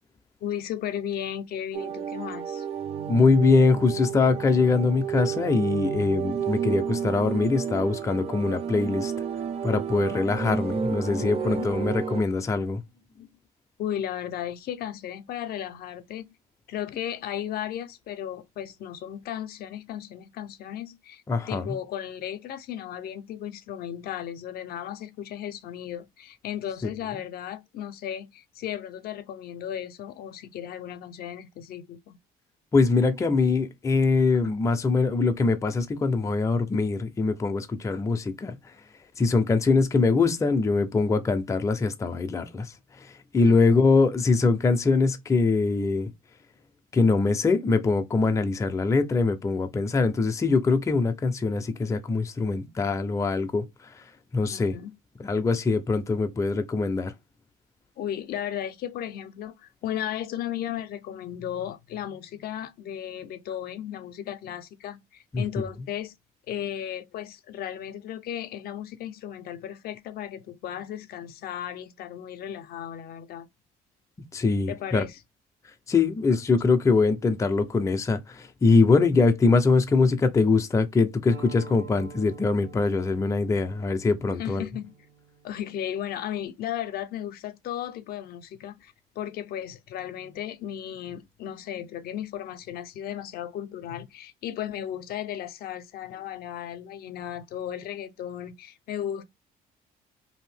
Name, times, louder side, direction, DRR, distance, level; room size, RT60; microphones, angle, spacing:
voice 1, 0.4-2.7 11.2-11.8 13.2-13.3 13.8-16.3 16.7-21.2 21.5-32.2 43.4-43.7 54.5-54.9 58.0-66.2 66.5-73.5 74.7-75.2 84.4-84.9 85.4-99.2, left 10 dB, 65° left, 0.5 m, -35 dB
sound 1, 1.7-12.2, right 7 dB, 35° right, 0.5 m, -31 dB
voice 2, 3.1-9.1 9.6-12.8 21.3-21.7 32.7-38.6 39.2-42.7 43.0-46.1 46.9-53.7 54.3-54.8 55.2-57.1 65.3-65.4 74.3-75.0 75.9-84.6, left 4 dB, 20° left, 0.4 m, -23 dB
sound 2, 81.3-86.5, right 4 dB, 80° right, 1.4 m, -47 dB
2.7 x 2.6 x 3.3 m
cardioid pair, 110°, 17 cm